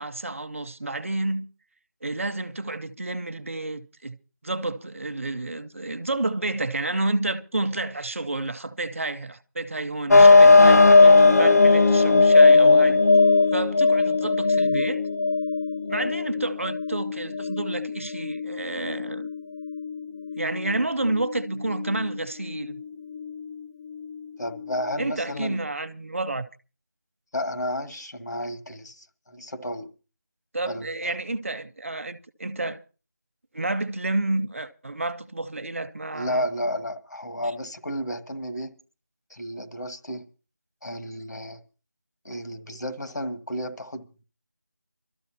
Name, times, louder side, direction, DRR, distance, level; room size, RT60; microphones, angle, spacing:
voice 1, 0.0-1.5 2.0-4.2 4.4-13.0 13.5-15.0 15.9-19.3 20.4-22.8 25.0-26.5 30.5-32.8 33.5-36.4, right 2 dB, 50° right, 0.7 m, -30 dB
sound 1, 10.1-25.5, left 3 dB, 65° left, 0.7 m, -19 dB
voice 2, 24.4-25.7 27.3-29.9 30.7-31.1 36.1-38.7 39.3-40.3 40.8-41.6 42.2-44.2, equal, 90° left, 1.5 m, -32 dB
27.0 x 13.5 x 2.8 m
figure-of-eight pair, 175°, 9 cm